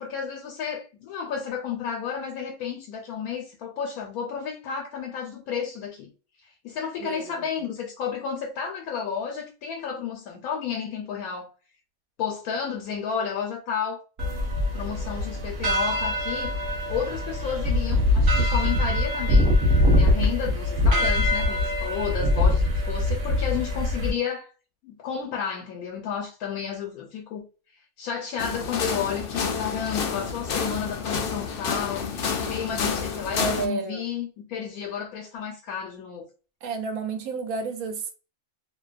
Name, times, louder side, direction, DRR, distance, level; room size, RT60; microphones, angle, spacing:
voice 1, 0.0-6.1 6.4-11.5 12.2-14.0 14.7-19.5 19.9-24.5 24.8-27.4 28.0-32.1 32.5-36.3, left 7 dB, 85° left, 1.0 m, -32 dB
voice 2, 7.0-7.4 33.3-34.1 36.6-38.1, right 4 dB, 85° right, 1.0 m, -31 dB
sound 1, 14.2-24.1, left 1 dB, 55° right, 0.8 m, -23 dB
sound 2, 28.4-33.7, left 6 dB, 70° left, 0.5 m, -29 dB
2.6 x 2.2 x 2.4 m
omnidirectional pair, 1.5 m